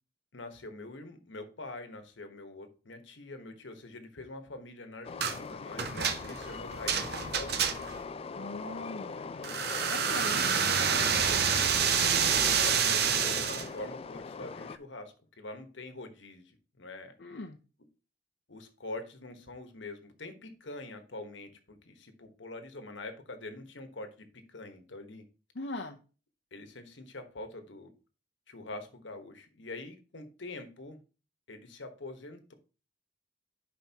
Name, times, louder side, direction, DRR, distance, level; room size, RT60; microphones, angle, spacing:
voice 1, 0.3-7.7 11.0-17.2 18.5-25.2 26.5-27.9 28.5-31.0 31.5-32.5, left 2 dB, 80° left, 1.2 m, -45 dB
Train, 5.0-14.8, left 4 dB, 30° left, 0.3 m, -41 dB
sound 1, 5.2-5.4 5.8-8.0 9.4-13.7, right 7 dB, 55° right, 0.7 m, -28 dB
voice 2, 8.3-10.5 10.8-11.0 17.2-17.6 25.5-26.0, left 2 dB, 65° left, 0.7 m, -41 dB
10.5 x 5.2 x 2.9 m
head